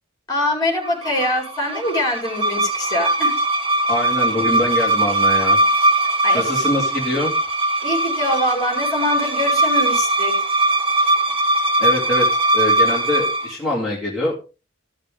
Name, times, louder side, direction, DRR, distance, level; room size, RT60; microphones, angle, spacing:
voice 1, 0.3-3.3 6.2-6.7 7.8-10.3, left 1 dB, 20° left, 1 dB, 4.3 m, -23 dB
sound 1, 0.8-13.5, right 2 dB, 25° right, 1.1 m, -20 dB
voice 2, 3.9-5.6 6.3-7.3 11.8-14.3, left 1 dB, ahead, -5 dB, 2.5 m, -24 dB
16.0 x 6.5 x 3.5 m, 0.32 s
head